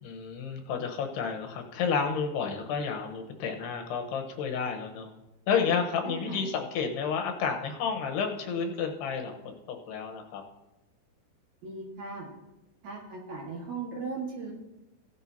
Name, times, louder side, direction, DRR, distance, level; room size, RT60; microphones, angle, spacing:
voice 1, 0.0-5.1 5.5-10.4, left 6 dB, 90° left, 3 dB, 3.2 m, -31 dB
voice 2, 6.0-6.4 11.6-12.3 12.8-14.5, right 4 dB, 55° right, -2 dB, 2.8 m, -37 dB
16.5 x 10.5 x 2.8 m, 0.99 s
omnidirectional pair, 4.6 m